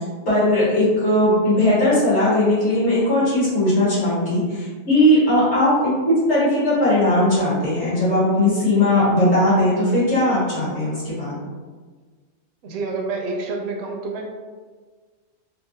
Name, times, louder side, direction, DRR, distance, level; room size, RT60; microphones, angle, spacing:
voice 1, 0.3-11.4, left 1 dB, 70° left, -11 dB, 2.0 m, -18 dB
voice 2, 12.6-14.4, right 3 dB, 70° right, 1 dB, 0.8 m, -28 dB
3.8 x 2.0 x 2.7 m, 1.4 s
omnidirectional pair, 1.2 m